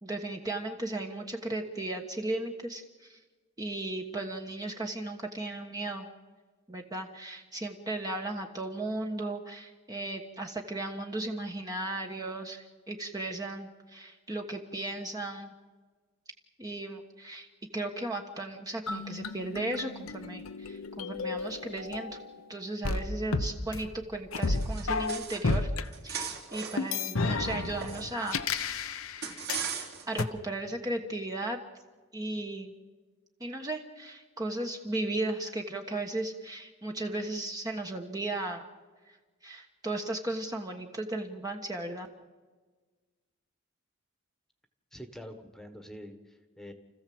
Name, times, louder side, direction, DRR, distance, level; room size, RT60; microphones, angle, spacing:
voice 1, 0.0-3.2 3.6-6.1 6.7-15.5 16.6-17.5 17.7-22.2 22.5-25.7 26.0-28.4 29.6-31.6 32.1-32.7 33.4-38.7 39.0-39.2 39.4-42.1, right 2 dB, 15° right, 2 dB, 1.3 m, -36 dB
sound 1, 18.9-22.4 22.8-25.8 26.8-29.7 30.2-30.3, left 3 dB, 80° left, 1.0 m, -32 dB
sound 2, 24.4-25.6 25.8-28.6 29.2-30.2, right 7 dB, 50° right, 3.4 m, -39 dB
voice 2, 44.9-46.7, equal, ahead, 7 dB, 1.6 m, -46 dB
29.5 x 15.0 x 7.8 m, 1.4 s
head